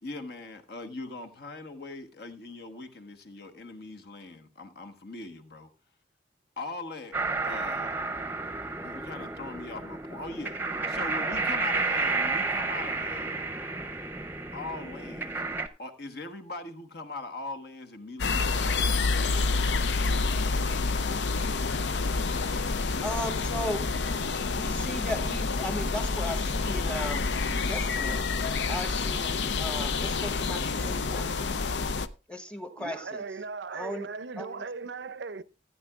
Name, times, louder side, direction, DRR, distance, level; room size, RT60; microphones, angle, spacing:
voice 1, 0.0-5.7 6.6-7.2 7.4-8.0 8.8-13.6 14.5-21.6, left 2 dB, 65° left, 1.3 m, -41 dB
sound 1, 7.1-15.7, right 3 dB, 10° right, 0.7 m, -31 dB
sound 2, 18.2-32.1, left 4 dB, 85° left, 0.6 m, -28 dB
voice 2, 23.0-23.9 24.5-28.3 28.7-31.3 32.3-33.2 33.7-34.1 34.4-34.5, left 1 dB, 5° left, 1.0 m, -36 dB
voice 3, 32.8-35.4, right 4 dB, 80° right, 0.6 m, -38 dB
15.5 x 9.8 x 2.4 m
head